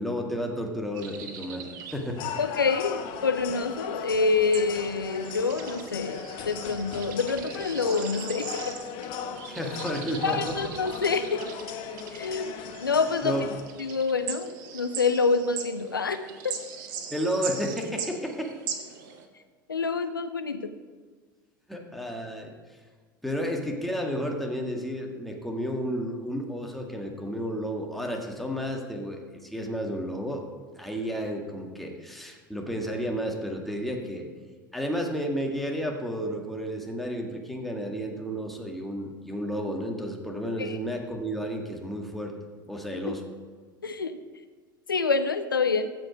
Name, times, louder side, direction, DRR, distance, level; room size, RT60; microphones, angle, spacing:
voice 1, 0.0-1.7 1.9-2.2 9.5-10.6 13.2-13.4 17.1-18.5 21.7-22.5 23.2-30.5 30.8-34.2 34.7-42.3 42.7-43.2, equal, ahead, 1 dB, 1.8 m, -32 dB
sound 1, 0.9-19.3, right 7 dB, 60° right, 1.3 m, -41 dB
sound 2, 2.2-13.6, left 8 dB, 50° left, 1.2 m, -38 dB
voice 2, 2.4-8.8 10.2-11.6 12.1-13.3 13.8-16.6 19.7-20.7 40.6-40.8 43.1-43.2 43.8-44.2 44.9-45.9, left 4 dB, 90° left, 10 dB, 0.5 m, -27 dB
15.5 x 5.3 x 5.1 m, 1.5 s
figure-of-eight pair, 80°, 11 cm